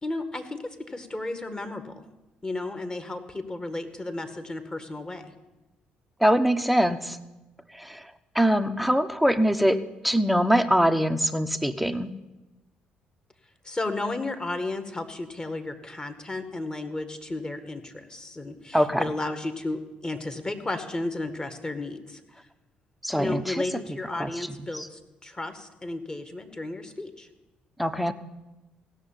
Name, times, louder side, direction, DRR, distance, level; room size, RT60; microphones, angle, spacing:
voice 1, 0.0-2.0 2.4-5.3 13.6-22.2 23.2-27.3, left 2 dB, 25° left, 8 dB, 1.9 m, -33 dB
voice 2, 6.2-7.2 7.8-8.0 8.3-9.8 10.0-12.1 18.7-19.0 23.0-23.6 24.2-24.3 24.7-24.9 27.8-28.1, equal, ahead, 10 dB, 1.0 m, -23 dB
16.5 x 6.6 x 9.1 m, 1.0 s
hypercardioid pair, 55°, 4 cm